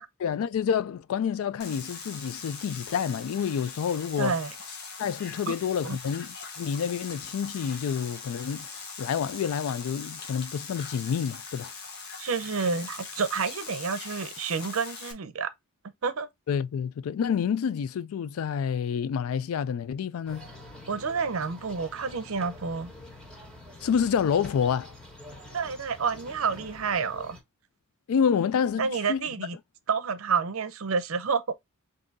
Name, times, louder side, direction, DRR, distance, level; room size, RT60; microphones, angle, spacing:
voice 1, 0.2-4.4 5.0-8.7 9.0-11.7 16.5-20.5 23.8-24.9 28.1-29.5, left 7 dB, 80° left, 0.3 m, -28 dB
sound 1, 1.6-15.1, left 5 dB, 50° left, 1.0 m, -41 dB
voice 2, 4.2-4.5 5.5-5.6 5.8-6.0 12.2-15.5 16.0-16.3 20.9-22.9 25.5-27.4 28.8-29.6 29.9-31.5, right 5 dB, 75° right, 0.6 m, -29 dB
sound 2, 20.3-27.4, left 1 dB, 5° left, 1.1 m, -46 dB
3.7 x 2.7 x 3.9 m
head